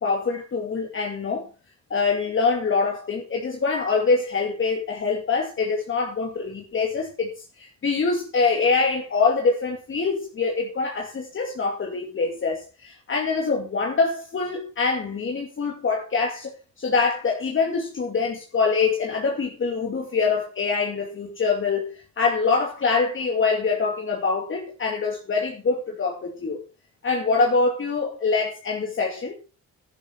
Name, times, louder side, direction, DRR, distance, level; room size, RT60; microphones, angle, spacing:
voice 1, 0.0-1.5 1.9-7.3 7.6-16.5 16.8-21.9 22.2-26.6 27.0-29.3, left 4 dB, 40° left, 2.5 m, -24 dB
11.0 x 10.5 x 4.6 m
cardioid pair, 90°, 30 cm